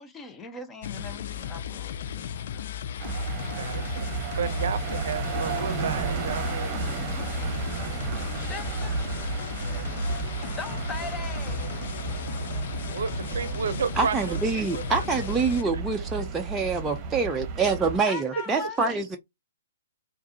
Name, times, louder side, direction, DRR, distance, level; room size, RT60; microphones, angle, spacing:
voice 1, 0.0-2.4 8.5-8.9 10.5-11.7 18.1-18.9, left 4 dB, 15° left, 0.8 m, -39 dB
sound 1, 0.8-15.6, left 8 dB, 55° left, 0.4 m, -35 dB
sound 2, 3.0-18.0, right 5 dB, 30° right, 1.0 m, -33 dB
voice 2, 3.6-6.8 12.9-15.2 18.4-18.5, right 6 dB, 65° right, 0.6 m, -32 dB
voice 3, 14.0-19.2, right 4 dB, 10° right, 0.5 m, -26 dB
4.6 x 2.6 x 2.7 m
figure-of-eight pair, 120°, 0 cm